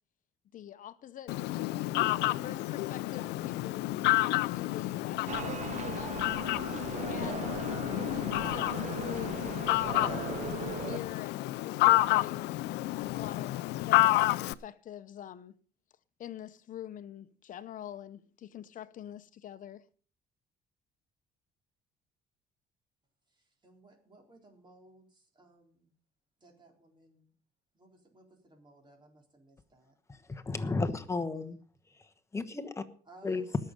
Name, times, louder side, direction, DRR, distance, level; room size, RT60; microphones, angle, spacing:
voice 1, 0.5-1.4 2.0-6.2 7.1-7.8 8.5-10.3 10.8-12.5 13.1-15.5 16.2-19.8, left 10 dB, 50° left, 0.9 m, -45 dB
Fowl, 1.3-14.5, left 18 dB, 85° left, 0.5 m, -30 dB
sound 1, 5.3-11.0, right 9 dB, 45° right, 0.6 m, -39 dB
voice 2, 23.3-25.9 26.4-27.3 27.7-29.9 33.1-33.6, right 2 dB, 25° right, 3.9 m, -59 dB
voice 3, 30.3-31.6 32.3-32.8 33.2-33.4, left 3 dB, 15° left, 1.2 m, -33 dB
19.5 x 6.6 x 5.3 m
cardioid pair, 110°, 17 cm